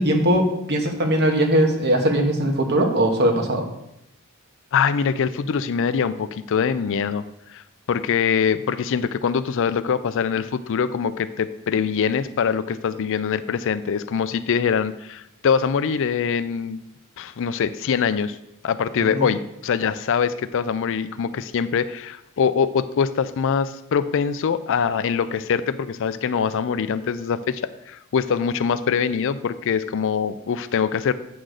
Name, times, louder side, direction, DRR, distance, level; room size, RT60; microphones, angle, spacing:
voice 1, 0.0-3.6 19.1-19.3, right 1 dB, 50° right, 4 dB, 1.2 m, -20 dB
voice 2, 4.7-7.2 7.5-16.8 17.2-18.4 18.6-27.6 27.9-31.1, left 6 dB, 60° left, 13 dB, 0.4 m, -23 dB
8.7 x 3.9 x 6.4 m, 0.82 s
head